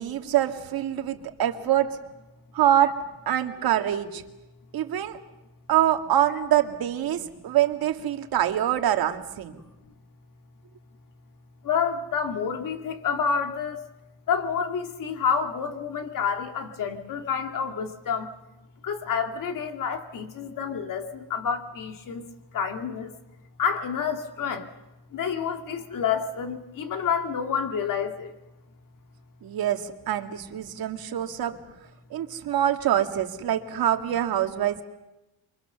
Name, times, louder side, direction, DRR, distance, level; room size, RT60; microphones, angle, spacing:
voice 1, 0.0-2.0 2.5-3.0 3.3-4.2 4.7-5.2 5.7-9.6 29.4-31.5 32.1-34.8, right 11 dB, 65° right, 6 dB, 2.0 m, -25 dB
voice 2, 11.6-13.8 14.3-18.3 18.8-22.2 22.5-23.1 23.6-24.7 25.1-28.3, left 6 dB, 55° left, 6 dB, 2.5 m, -28 dB
29.5 x 24.0 x 6.8 m, 0.98 s
cardioid pair, 155°, 39 cm